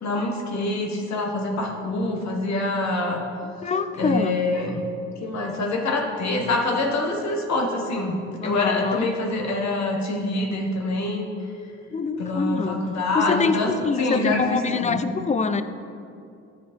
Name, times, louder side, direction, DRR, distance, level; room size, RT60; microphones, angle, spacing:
voice 1, 0.0-3.2 4.0-4.8 5.2-8.2 8.4-11.2 12.2-13.7 14.0-14.4 14.7-15.0, left 2 dB, 65° left, 1 dB, 1.5 m, -25 dB
voice 2, 3.4-4.4 8.4-9.1 11.9-12.8 13.1-15.6, left 4 dB, 25° left, 11 dB, 0.5 m, -25 dB
12.5 x 5.2 x 4.4 m, 2.5 s
cardioid pair, 90°, 30 cm